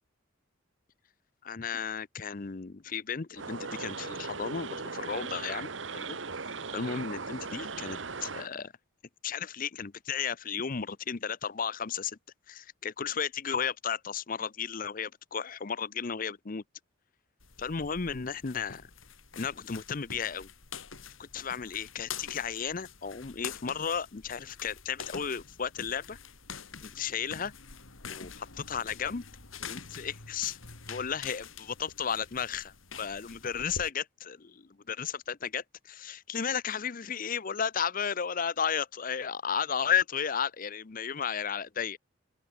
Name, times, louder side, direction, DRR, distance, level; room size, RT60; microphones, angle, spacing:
voice 1, 1.4-6.2 6.7-8.7 9.2-12.2 12.5-16.6 17.6-18.8 19.4-20.5 21.2-26.2 26.8-27.5 28.1-29.2 29.6-30.6 30.9-42.0, left 7 dB, 40° left, 0.6 m, -34 dB
sound 1, 3.4-8.5, right 4 dB, 65° right, 1.6 m, -38 dB
sound 2, 17.4-33.9, left 6 dB, 80° left, 3.3 m, -46 dB
open air
head